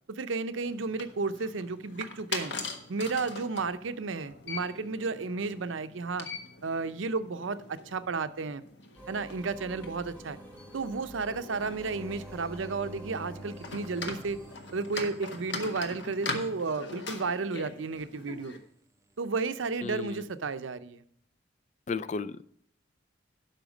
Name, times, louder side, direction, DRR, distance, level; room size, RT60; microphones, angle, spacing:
voice 1, 0.1-2.5 2.9-6.3 6.6-8.6 9.1-10.4 10.7-14.4 14.7-18.6 19.2-21.0, right 4 dB, 80° right, 12 dB, 0.6 m, -33 dB
sound 1, 0.6-18.6, left 3 dB, 60° left, 1.4 m, -42 dB
sound 2, 9.0-14.6, equal, 10° left, 1.5 m, -48 dB
sound 3, 11.8-16.4 19.7-20.2, right 2 dB, 15° right, 0.5 m, -49 dB
voice 2, 19.8-20.2 21.9-22.4, left 4 dB, 35° left, 14 dB, 0.3 m, -34 dB
12.0 x 5.7 x 5.1 m, 0.66 s
head